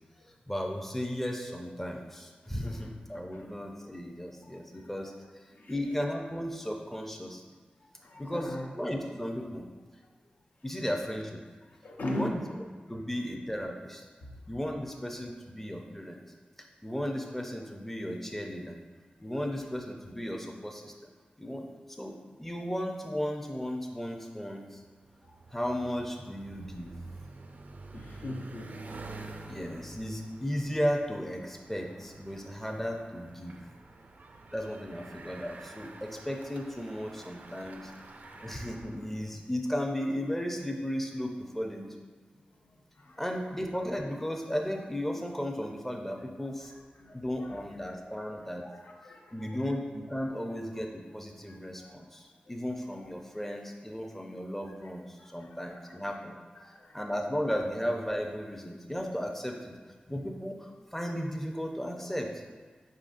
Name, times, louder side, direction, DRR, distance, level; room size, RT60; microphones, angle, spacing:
voice 1, 0.5-5.1 5.7-7.4 8.2-9.6 10.6-11.4 12.0-12.4 12.9-14.0 14.5-16.2 16.8-18.7 19.2-20.9 21.4-21.7 22.0-24.8 25.5-26.9 29.5-33.6 34.5-37.9 38.4-41.9 43.2-46.7 47.1-48.7 49.3-56.4 56.6-59.7 60.1-62.3, equal, 10° left, 1 dB, 0.4 m, -35 dB
voice 2, 4.4-4.9 5.5-5.7 8.0-8.7 11.7-12.6 14.2-14.3 19.2-19.3 25.2-25.4 27.9-29.1 37.8-37.9 38.2-38.6 42.6-43.2 47.0-47.7 48.2-49.6 51.5-52.1 53.0-53.1 55.2-56.0 56.5-57.0, left 1 dB, 75° left, -1 dB, 0.6 m, -42 dB
Bicycle, 24.7-39.4, right 3 dB, 60° right, 0.3 m, -48 dB
4.7 x 3.7 x 2.5 m, 1.4 s
cardioid pair, 55°, 3 cm